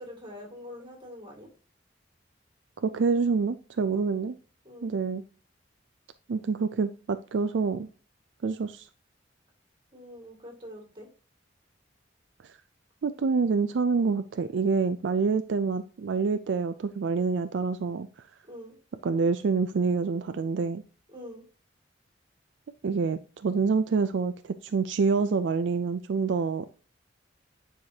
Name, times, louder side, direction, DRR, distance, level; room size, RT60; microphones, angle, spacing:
voice 1, 0.0-1.5 4.6-4.9 9.9-11.1 18.5-18.8 21.1-21.4, left 1 dB, 25° right, 0 dB, 2.4 m, -44 dB
voice 2, 2.8-4.4 4.8-5.2 6.3-7.9 8.4-8.9 12.4-12.6 13.0-18.3 19.0-20.8 22.8-26.7, right 4 dB, 65° right, 10 dB, 0.4 m, -27 dB
9.5 x 4.9 x 2.8 m, 0.38 s
head